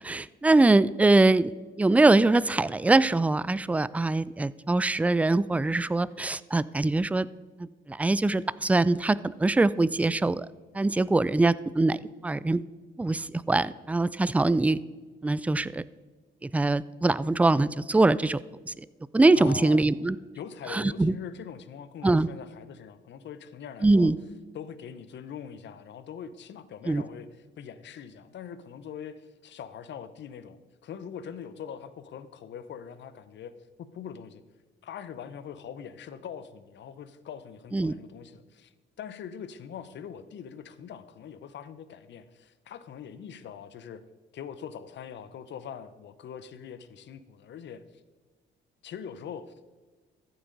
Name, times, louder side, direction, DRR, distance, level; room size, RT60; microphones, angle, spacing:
voice 1, 0.0-1.5 1.8-7.3 7.6-10.5 10.7-12.6 13.0-14.8 15.2-15.8 16.4-18.4 18.7-18.8 19.1-20.2 20.7-21.1 22.0-22.3 23.8-24.2 26.9-27.0 37.7-37.9, right 2 dB, 5° right, 18 dB, 0.3 m, -23 dB
voice 2, 19.4-19.9 20.3-24.1 24.5-33.5 33.8-34.4 34.8-38.7 39.0-44.0 44.3-47.8 48.8-49.8, left 8 dB, 65° left, 13 dB, 0.8 m, -42 dB
14.0 x 8.0 x 3.9 m, 1.4 s
cardioid pair, 90°, 20 cm